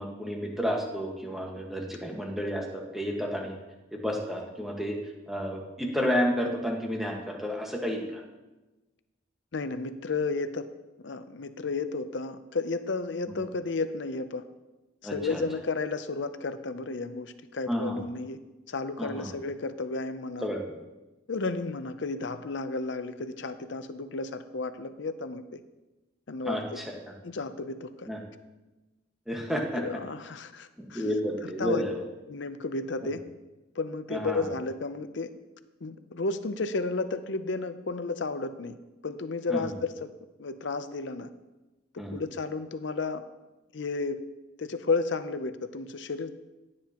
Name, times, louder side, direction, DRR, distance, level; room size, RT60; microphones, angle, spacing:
voice 1, 0.0-3.5 3.9-5.0 5.3-8.2 13.3-13.4 15.0-15.4 17.7-18.0 19.0-19.3 20.4-20.6 26.4-26.9 28.1-28.2 29.3-29.8 30.8-32.0 34.1-34.4 39.5-39.7 42.0-42.2, equal, ahead, -1 dB, 1.5 m, -31 dB
voice 2, 9.5-10.7 11.0-14.4 15.0-18.4 18.7-20.5 21.3-25.6 26.3-26.8 27.2-28.1 29.7-31.1 31.4-31.8 32.3-33.2 33.8-35.3 35.8-38.8 39.0-40.1 40.4-41.3 42.1-43.2 43.7-44.2 44.6-46.3, left 3 dB, 65° left, 10 dB, 0.6 m, -32 dB
15.5 x 9.6 x 3.0 m, 1.1 s
head